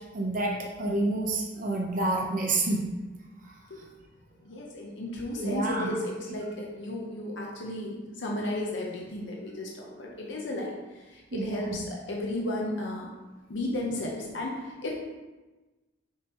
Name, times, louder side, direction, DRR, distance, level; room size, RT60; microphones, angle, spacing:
voice 1, 0.1-2.8 3.4-3.5 5.4-5.9 11.3-11.8, right 2 dB, 45° right, -1 dB, 0.9 m, -29 dB
voice 2, 4.4-13.1 13.5-15.0, left 1 dB, 70° left, -2 dB, 0.8 m, -34 dB
6.8 x 4.8 x 3.0 m, 1.2 s
head